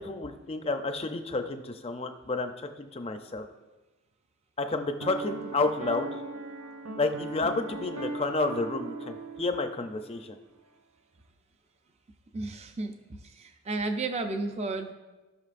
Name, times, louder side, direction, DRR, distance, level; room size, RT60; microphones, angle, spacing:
voice 1, 0.0-2.5 2.8-3.5 4.6-6.1 7.0-10.4, left 3 dB, 25° left, 7 dB, 0.5 m, -30 dB
Piano, 5.0-10.3, right 3 dB, 80° right, 0.5 m, -39 dB
voice 2, 12.3-13.0 13.2-14.9, right 3 dB, 30° right, 6 dB, 0.4 m, -33 dB
16.0 x 5.9 x 2.5 m, 1.1 s
head